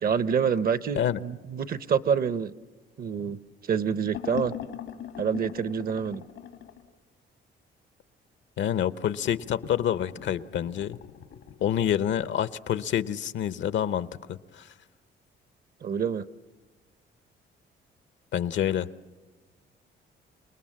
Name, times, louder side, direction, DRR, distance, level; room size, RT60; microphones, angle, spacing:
voice 1, 0.0-2.5 3.0-3.4 3.7-4.5 5.2-6.2 15.8-16.2, right 7 dB, 50° right, 15 dB, 0.8 m, -27 dB
sound 1, 4.1-6.8 9.2-12.3, left 9 dB, 90° left, 1.9 m, -41 dB
voice 2, 8.6-11.0 11.6-14.7 18.3-18.9, left 10 dB, 70° left, 15 dB, 0.7 m, -27 dB
28.5 x 19.5 x 7.4 m, 1.3 s
cardioid pair, 90°, 20 cm